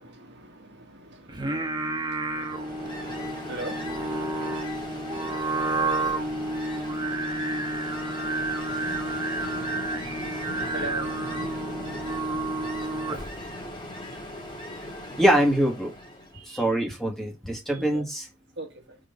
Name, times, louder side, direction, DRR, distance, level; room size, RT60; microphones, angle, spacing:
voice 1, 0.0-8.5 10.7-11.2 14.1-14.2 14.7-15.0 16.3-16.7 17.7-18.0 18.6-19.0, right 2 dB, 60° right, 1.5 m, -44 dB
Singing, 1.3-13.5, right 2 dB, 20° right, 1.1 m, -30 dB
Ocean, 2.3-16.4, left 1 dB, 25° left, 1.8 m, -38 dB
voice 2, 15.2-15.9 16.5-18.3, right 1 dB, ahead, 1.8 m, -23 dB
5.5 x 3.9 x 5.4 m
head